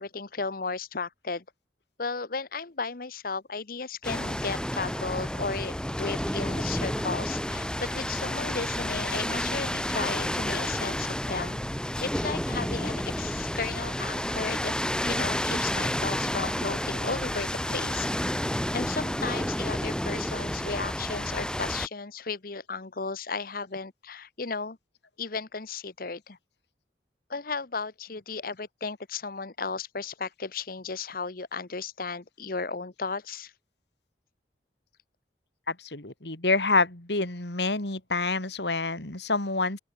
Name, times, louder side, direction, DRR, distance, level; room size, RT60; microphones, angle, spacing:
voice 1, 0.0-1.4 2.0-11.6 12.0-14.7 15.0-18.1 18.5-24.8 25.2-26.4 27.3-33.5, left 4 dB, 55° left, 1.1 m, -35 dB
sound 1, 4.0-21.9, equal, 5° left, 2.2 m, -30 dB
voice 2, 35.7-39.8, left 3 dB, 75° left, 3.4 m, -27 dB
open air
head